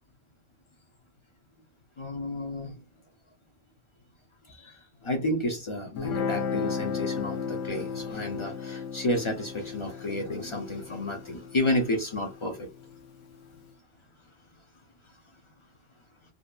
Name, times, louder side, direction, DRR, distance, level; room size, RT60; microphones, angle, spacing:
voice 1, 2.0-2.8 4.5-12.7, left 1 dB, 45° left, 0.4 m, -31 dB
Guitar, 6.0-13.1, left 6 dB, 80° left, 1.0 m, -34 dB
2.7 x 2.4 x 2.2 m
omnidirectional pair, 1.3 m